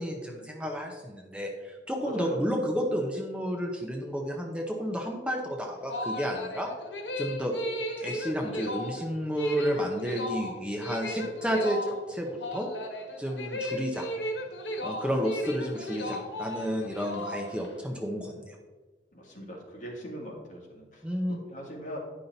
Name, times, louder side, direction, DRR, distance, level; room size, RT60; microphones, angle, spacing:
voice 1, 0.0-6.7 7.2-7.5 8.0-12.7 13.2-14.1 14.8-18.6 21.0-21.4, equal, 5° right, 1 dB, 0.7 m, -31 dB
voice 2, 2.0-2.6 19.1-21.0 21.3-22.0, right 1 dB, 45° left, -1 dB, 1.8 m, -39 dB
sound 1, 5.7-17.8, equal, 90° left, 1.2 m, -35 dB
9.5 x 5.6 x 4.0 m, 1.3 s
head